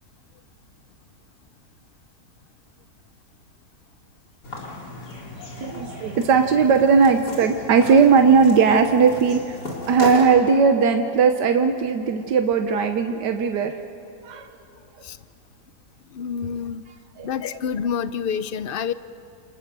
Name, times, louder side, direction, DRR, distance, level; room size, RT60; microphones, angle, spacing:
sound 1, 4.4-10.4, left 2 dB, 75° left, 4.5 m, -35 dB
voice 1, 5.6-9.6 9.9-13.8 14.2-14.5 17.2-17.3, right 5 dB, 85° right, 6 dB, 1.6 m, -18 dB
voice 2, 16.1-16.8 17.2-18.9, left 7 dB, 55° left, 14 dB, 0.6 m, -27 dB
29.5 x 26.0 x 6.9 m, 2.7 s
omnidirectional pair, 1.8 m